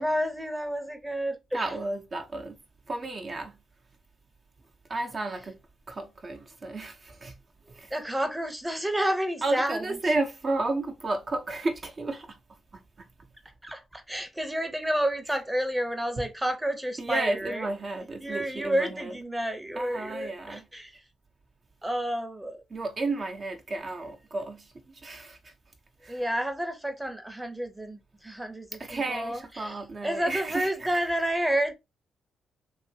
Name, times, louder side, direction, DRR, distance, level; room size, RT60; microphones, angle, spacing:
voice 1, 0.0-1.7 7.7-10.0 13.6-17.7 18.2-21.0 21.8-22.6 26.1-31.7, equal, 10° right, 0.9 m, -30 dB
voice 2, 1.5-2.6 2.9-3.6 4.9-5.6 5.9-7.4 7.7-7.9 9.4-12.4 12.7-13.1 17.0-19.1 19.7-20.7 22.7-25.5 26.0-26.2 28.8-30.7, right 2 dB, 45° right, 0.9 m, -32 dB
2.9 x 2.9 x 2.8 m
supercardioid pair, 55°, 0 cm